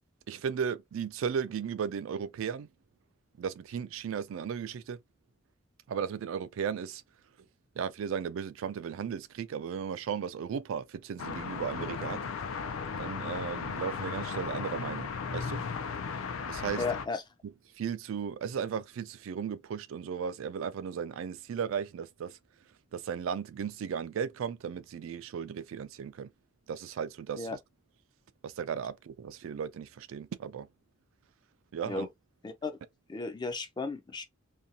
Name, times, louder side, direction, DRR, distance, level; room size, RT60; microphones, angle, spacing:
voice 1, 0.3-2.7 3.4-5.0 5.9-7.0 7.8-12.3 13.0-15.6 16.5-16.8 17.8-22.4 22.9-26.3 26.7-27.6 28.4-30.7 31.7-32.1, right 7 dB, 75° right, 0.3 m, -35 dB
sound 1, 11.2-17.1, left 5 dB, 90° left, 0.4 m, -36 dB
voice 2, 16.8-17.2 27.4-27.6 31.8-32.1 32.4-32.7 33.1-34.2, left 3 dB, 20° left, 0.4 m, -34 dB
2.6 x 2.2 x 2.7 m
head